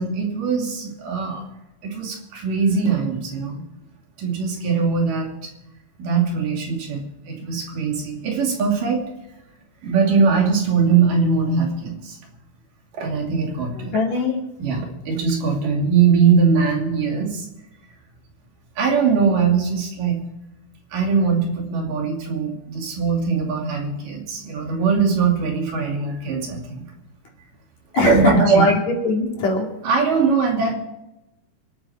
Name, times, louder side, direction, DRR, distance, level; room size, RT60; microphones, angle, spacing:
voice 1, 0.0-1.4 1.8-3.6 4.2-5.3 6.0-7.0 7.3-9.1 9.8-12.2 12.9-14.0 14.6-17.5 18.8-20.2 20.9-26.8 28.0-28.7 29.8-30.7, right 5 dB, 80° right, 1 dB, 4.3 m, -21 dB
voice 2, 13.8-14.3 27.9-29.7, left 4 dB, 60° left, 1 dB, 3.6 m, -21 dB
25.5 x 9.2 x 4.5 m, 0.91 s
omnidirectional pair, 3.7 m